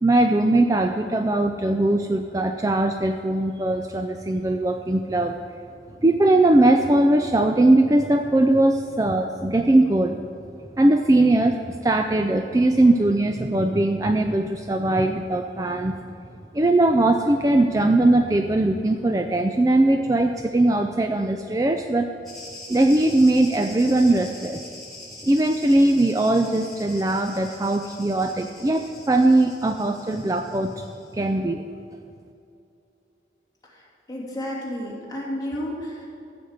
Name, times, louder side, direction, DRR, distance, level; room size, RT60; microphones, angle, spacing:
voice 1, 0.0-5.3 6.0-10.2 10.8-11.6 11.8-15.9 16.5-22.1 22.7-24.6 25.2-30.9 31.1-31.6, right 2 dB, 20° right, 5 dB, 0.4 m, -20 dB
sound 1, 22.2-31.1, left 2 dB, ahead, 3.4 m, -43 dB
voice 2, 33.6-36.3, equal, 20° left, -5 dB, 2.5 m, -32 dB
15.0 x 5.2 x 7.9 m, 2.7 s
head